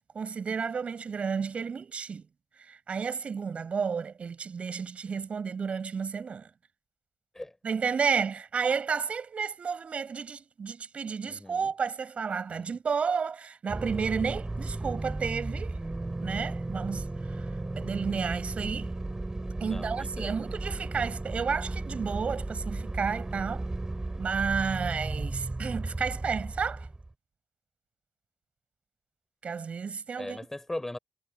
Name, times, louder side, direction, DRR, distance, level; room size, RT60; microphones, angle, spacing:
voice 1, 0.1-2.2 2.6-6.5 7.6-15.8 16.2-17.0 17.3-17.5 17.8-18.9 19.6-23.6 24.2-26.9 29.4-30.4, right 6 dB, 55° right, 6.1 m, -32 dB
voice 2, 11.2-11.7 12.5-12.8 19.6-20.3 30.2-31.0, left 1 dB, 15° left, 3.9 m, -39 dB
sound 1, 13.7-27.1, right 2 dB, 20° right, 5.6 m, -35 dB
cardioid pair, 65°, 3 cm